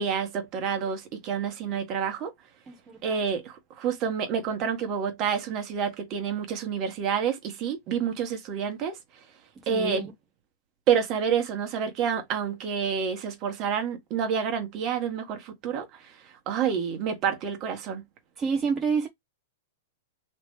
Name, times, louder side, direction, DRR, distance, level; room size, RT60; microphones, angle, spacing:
voice 1, 0.0-2.3 3.0-9.0 9.7-10.0 10.9-15.8 16.5-18.0, right 7 dB, 40° right, 1.6 m, -28 dB
voice 2, 2.7-3.2 9.6-10.1 18.4-19.1, right 5 dB, 20° right, 1.0 m, -28 dB
3.3 x 3.0 x 3.3 m
hypercardioid pair, 120°, 0 cm